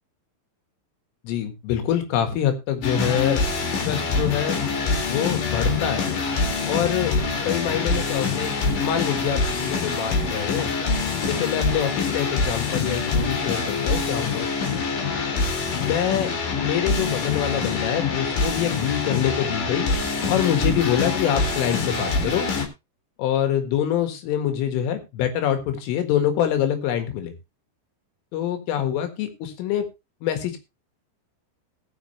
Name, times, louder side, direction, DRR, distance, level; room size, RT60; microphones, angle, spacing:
voice 1, 1.2-3.4 3.8-4.7 5.1-6.1 6.7-7.1 7.4-10.7 11.3-14.8 15.8-16.3 16.6-19.9 20.3-22.5 23.2-27.3 28.3-29.9 30.2-30.6, left 10 dB, 85° left, 7 dB, 4.4 m, -25 dB
sound 1, 2.8-22.7, left 4 dB, 50° left, 3.3 m, -25 dB
19.5 x 6.6 x 3.2 m, 0.25 s
omnidirectional pair, 5.6 m